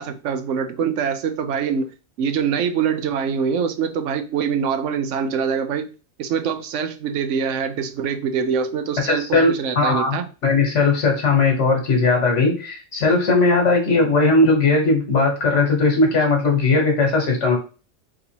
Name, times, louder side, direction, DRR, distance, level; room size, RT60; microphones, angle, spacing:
voice 1, 0.0-5.9 6.2-10.3, right 7 dB, 85° right, 1.0 m, -24 dB
voice 2, 9.0-10.2 10.4-17.6, left 3 dB, 75° left, 1.6 m, -18 dB
4.0 x 3.6 x 2.8 m
omnidirectional pair, 1.2 m